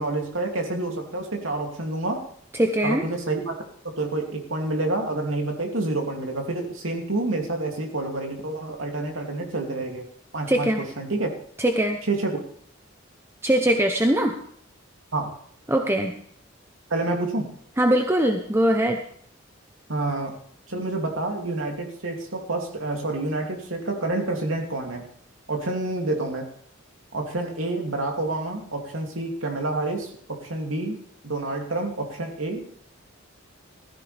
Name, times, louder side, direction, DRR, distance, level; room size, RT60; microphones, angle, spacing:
voice 1, 0.0-2.2 2.8-10.1 10.3-10.7 11.0-11.3 12.1-12.4 15.1-15.4 16.9-17.5 19.9-20.4 20.7-25.1 25.5-26.5 27.1-32.7, right 2 dB, 75° right, 2 dB, 2.8 m, -28 dB
voice 2, 2.5-3.1 10.5-10.8 11.6-12.0 13.4-14.4 15.7-16.1 17.8-19.0, right 1 dB, 10° right, 4 dB, 0.8 m, -21 dB
15.5 x 14.0 x 3.4 m, 0.62 s
head